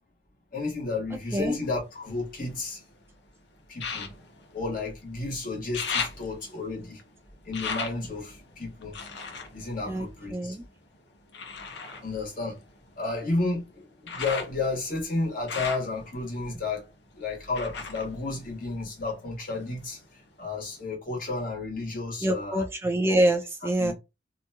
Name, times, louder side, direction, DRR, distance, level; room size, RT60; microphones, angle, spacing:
voice 1, 0.5-2.8 3.7-4.1 4.5-7.0 7.4-8.9 9.5-10.6 12.0-12.6 13.0-16.9 17.1-20.0 20.4-22.6 23.8-23.9, left 3 dB, 50° left, 1.3 m, -32 dB
sound 1, 1.6-2.9 3.7-5.3 5.5-10.7 11.3-19.2 19.5-20.3 20.8-20.9, left 5 dB, 65° left, 0.7 m, -38 dB
voice 2, 9.9-10.6 22.2-23.9, right 1 dB, 15° right, 0.3 m, -26 dB
2.8 x 2.3 x 2.7 m
head